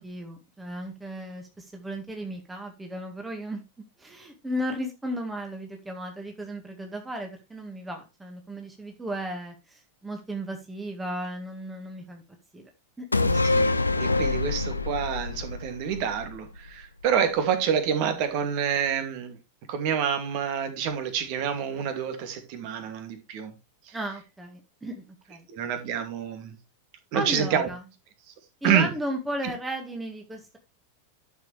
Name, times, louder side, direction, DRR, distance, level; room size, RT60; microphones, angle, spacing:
voice 1, 0.0-3.6 4.0-12.2 12.5-12.7 13.0-13.4 23.9-25.5 27.1-27.8 28.6-30.6, right 1 dB, 10° right, 1.9 m, -35 dB
sound 1, 13.1-16.7 17.0-17.1, left 3 dB, 80° left, 0.9 m, -26 dB
voice 2, 13.9-19.4 19.7-23.5 23.9-24.0 25.5-26.5 27.1-27.7 28.6-28.9, right 8 dB, 45° right, 2.4 m, -27 dB
11.5 x 7.0 x 3.3 m
figure-of-eight pair, 90°, 0 cm